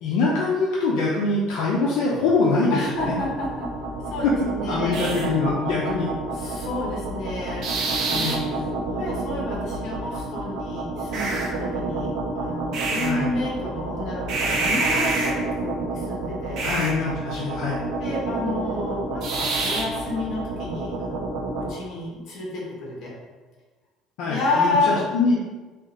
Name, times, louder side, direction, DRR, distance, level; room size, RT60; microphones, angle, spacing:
voice 1, 0.0-2.8 3.1-3.2 4.2-4.3 4.7-6.1 8.1-8.5 13.0-13.3 16.6-17.8 24.2-25.4, left 3 dB, 80° left, -5 dB, 0.6 m, -23 dB
voice 2, 2.7-3.7 4.0-5.0 6.3-16.6 18.0-23.1 24.2-25.0, left 2 dB, 55° left, -3 dB, 1.3 m, -30 dB
sound 1, 3.0-21.7, right 3 dB, 60° right, 0.7 m, -28 dB
3.7 x 2.5 x 3.9 m, 1.3 s
cardioid pair, 135°, 0 cm